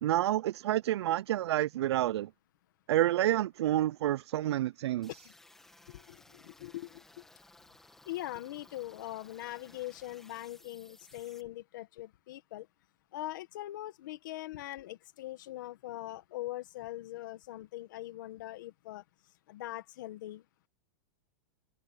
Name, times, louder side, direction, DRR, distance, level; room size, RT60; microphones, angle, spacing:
voice 1, 0.0-2.3 2.9-5.1, right 13 dB, 85° right, 0.4 m, -29 dB
sound 1, 5.0-11.4, left 2 dB, 5° left, 1.8 m, -59 dB
voice 2, 5.9-7.0 8.0-12.7 13.1-19.0 19.5-20.4, left 16 dB, 50° left, 1.4 m, -42 dB
supercardioid pair, 180°, 13 cm